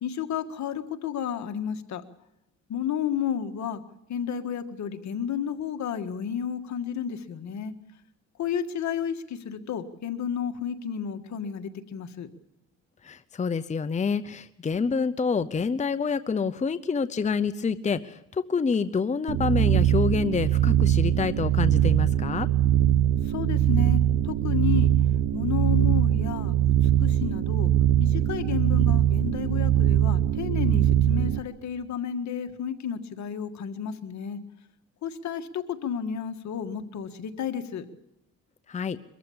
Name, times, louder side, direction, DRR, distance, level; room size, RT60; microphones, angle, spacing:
voice 1, 0.0-2.1 2.7-3.8 4.1-7.7 8.4-12.3 23.2-24.9 25.3-27.7 28.0-34.4 35.0-37.9, left 8 dB, 65° left, 8 dB, 1.7 m, -32 dB
voice 2, 13.0-22.5 38.7-39.0, left 5 dB, 25° left, 13 dB, 0.7 m, -27 dB
sound 1, 19.3-31.4, right 11 dB, 70° right, 1.0 m, -22 dB
23.0 x 14.5 x 8.7 m, 0.84 s
cardioid pair, 90°, 30 cm